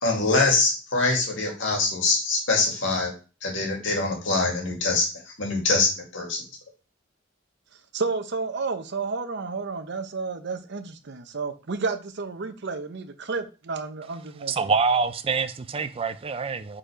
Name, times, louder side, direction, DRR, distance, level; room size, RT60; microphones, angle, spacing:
voice 1, 0.0-3.1 3.4-5.1 5.4-6.4, left 3 dB, 70° left, 2.2 m, -24 dB
voice 2, 7.9-14.7, right 4 dB, 60° right, 0.7 m, -31 dB
voice 3, 14.5-16.8, right 5 dB, 30° right, 0.4 m, -25 dB
5.2 x 4.2 x 4.9 m
head